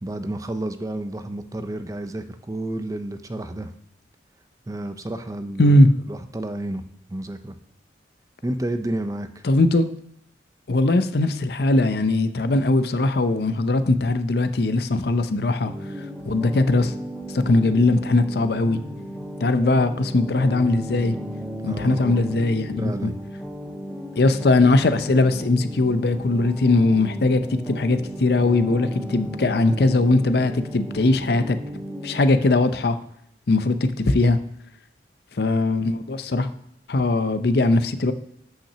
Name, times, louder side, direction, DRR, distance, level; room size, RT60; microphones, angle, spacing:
voice 1, 0.0-3.7 4.7-5.8 6.1-6.8 7.1-7.6 8.4-9.4 21.7-22.3 22.8-23.2, right 1 dB, 20° right, 9 dB, 0.4 m, -30 dB
voice 2, 5.6-5.9 9.4-9.9 10.7-15.7 16.3-16.9 17.3-18.8 19.4-21.2 21.6-23.1 24.2-31.6 32.0-33.0 33.5-34.4 35.4-36.5 36.9-38.1, left 2 dB, 60° left, 10 dB, 0.5 m, -20 dB
sound 1, 15.6-32.3, equal, ahead, 1.1 m, -35 dB
5.8 x 5.7 x 6.7 m, 0.72 s
head